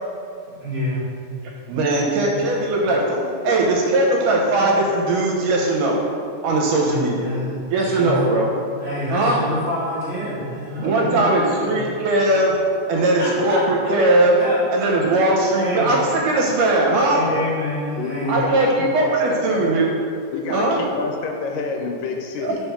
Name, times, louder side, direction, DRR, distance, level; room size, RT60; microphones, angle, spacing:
voice 1, 0.6-1.0 2.2-2.3 6.8-8.2 8.8-11.7 13.2-13.9 14.4-14.9 15.6-15.9 16.2-16.3 17.1-18.4, left 1 dB, 50° right, -10 dB, 1.5 m, -27 dB
voice 2, 1.7-3.2 3.4-6.0 6.4-7.3 7.7-8.5 9.1-9.4 10.8-12.6 12.9-14.3 14.7-17.2 18.3-19.9 20.5-20.8 22.4-22.5, right 2 dB, 75° right, -2 dB, 2.2 m, -19 dB
voice 3, 11.0-11.6 13.9-14.0 16.3-16.4 18.0-19.7 20.3-22.6, left 3 dB, 90° left, 2 dB, 2.3 m, -29 dB
5.1 x 3.5 x 5.6 m, 2.5 s
omnidirectional pair, 3.9 m